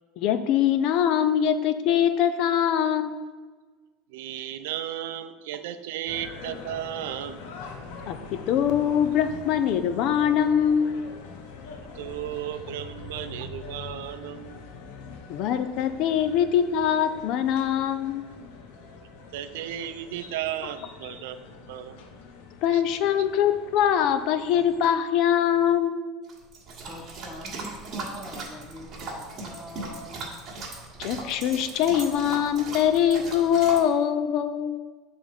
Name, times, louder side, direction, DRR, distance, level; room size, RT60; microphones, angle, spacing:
voice 1, 0.2-3.3 8.1-11.0 15.3-18.2 22.6-26.0 31.0-34.8, left 9 dB, 45° left, 10 dB, 0.4 m, -23 dB
voice 2, 4.1-7.4 11.9-14.6 19.3-22.0 22.7-23.3, right 11 dB, 85° right, 11 dB, 0.4 m, -35 dB
sound 1, 6.1-24.9, left 4 dB, 75° left, 0.9 m, -43 dB
sound 2, 26.3-33.8, right 3 dB, 25° right, 1.5 m, -38 dB
voice 3, 26.8-30.5, left 1 dB, 10° left, -2 dB, 0.8 m, -43 dB
7.3 x 3.5 x 5.2 m, 1.4 s
cardioid pair, 170°, 0 cm